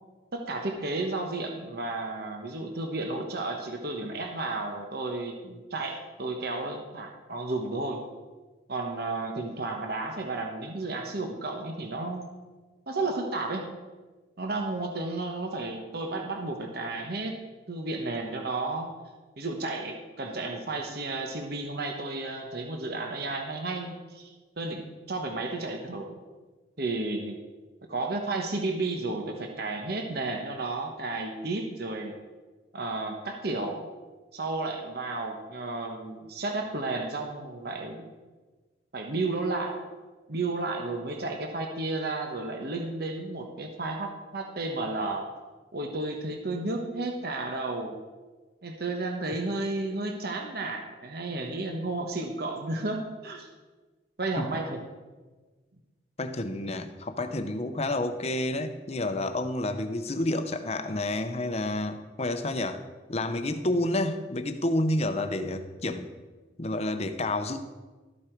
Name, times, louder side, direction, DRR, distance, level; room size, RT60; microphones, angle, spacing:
voice 1, 0.3-8.0 8.7-12.2 12.9-13.7 14.4-17.4 17.7-18.9 19.4-26.2 26.8-27.4 27.9-32.2 32.7-33.9 34.3-38.0 38.9-39.8 40.3-45.3 45.7-48.0 48.6-53.5 54.2-54.8, right 2 dB, 55° right, 3 dB, 1.1 m, -32 dB
voice 2, 56.2-62.8 63.1-66.1 66.6-67.6, left 1 dB, 35° left, 8 dB, 0.8 m, -29 dB
13.0 x 8.3 x 4.6 m, 1.3 s
head